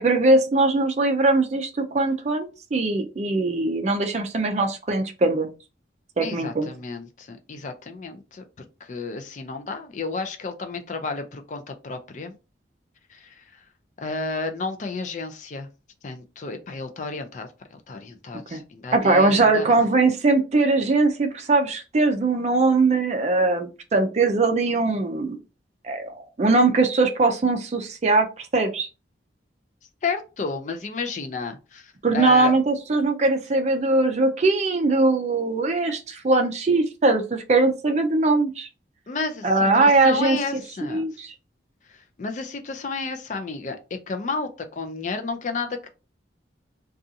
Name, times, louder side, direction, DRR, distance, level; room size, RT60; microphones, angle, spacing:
voice 1, 0.0-5.5 6.2-6.7 18.5-18.6 18.9-25.4 25.8-28.9 32.0-38.7 39.4-41.3, right 3 dB, 40° right, 6 dB, 0.4 m, -21 dB
voice 2, 6.2-12.3 13.1-13.4 14.0-15.7 16.0-19.8 30.0-32.5 39.1-41.0 41.9-43.8 44.1-45.9, left 4 dB, 40° left, 6 dB, 0.4 m, -32 dB
2.6 x 2.3 x 2.6 m, 0.30 s
head